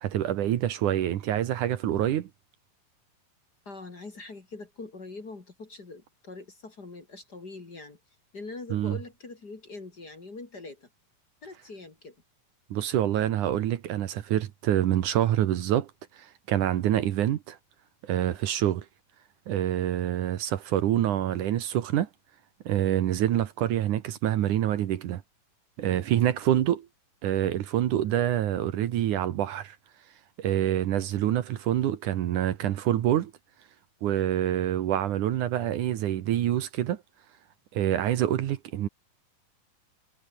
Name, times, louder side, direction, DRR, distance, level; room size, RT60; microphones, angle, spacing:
voice 1, 0.0-2.3 8.7-9.0 12.7-15.9 16.2-17.6 18.0-18.9 19.5-22.1 22.7-25.2 25.8-26.9 27.2-29.8 30.4-33.3 34.0-37.0 37.7-38.9, right 11 dB, 70° right, 2.6 m, -26 dB
voice 2, 3.7-8.0 8.3-10.9 11.4-12.2, left 3 dB, 30° left, 2.7 m, -43 dB
omnidirectional pair, 4.0 m